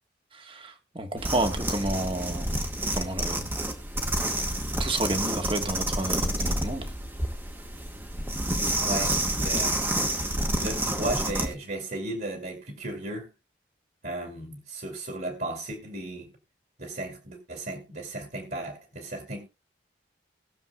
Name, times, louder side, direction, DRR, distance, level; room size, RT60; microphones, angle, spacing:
voice 1, 0.3-2.6 2.9-3.5 4.2-4.4 4.8-6.9, right 1 dB, 30° right, 1.5 m, -31 dB
sound 1, 1.2-11.5, right 1 dB, 10° right, 1.3 m, -29 dB
voice 2, 8.8-10.0 10.6-13.3 14.0-16.3 16.8-19.5, right 1 dB, 55° right, 2.5 m, -35 dB
20.0 x 7.2 x 2.3 m
head